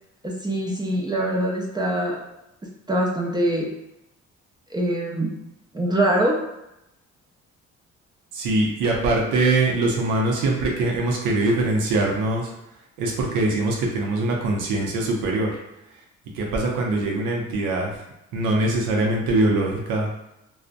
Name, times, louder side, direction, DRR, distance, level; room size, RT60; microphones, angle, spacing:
voice 1, 0.2-2.2 2.9-3.7 4.7-5.3 5.7-6.4, right 1 dB, 15° right, -2 dB, 0.4 m, -23 dB
voice 2, 8.3-12.5 13.0-15.5 16.3-17.9 18.3-20.1, right 2 dB, 90° right, -1 dB, 0.5 m, -22 dB
2.5 x 2.0 x 2.4 m, 0.87 s
cardioid pair, 90°, 30 cm